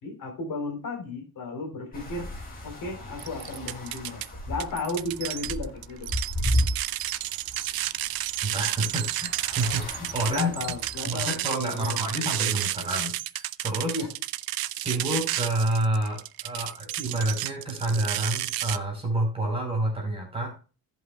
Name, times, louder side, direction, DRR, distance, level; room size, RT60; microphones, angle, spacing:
voice 1, 0.0-2.3 2.6-6.1 10.3-11.4 11.6-12.0 13.9-14.1, left 2 dB, 55° left, 3 dB, 3.9 m, -34 dB
sound 1, 1.9-11.4, equal, 20° left, 2.4 m, -34 dB
sound 2, 3.2-4.3 4.6-18.8, right 14 dB, 65° right, 0.6 m, -31 dB
voice 2, 8.4-10.5 11.1-14.0 14.8-20.6, right 1 dB, 15° right, 0 dB, 4.0 m, -29 dB
16.5 x 5.6 x 2.2 m, 0.34 s
cardioid pair, 165°, 39 cm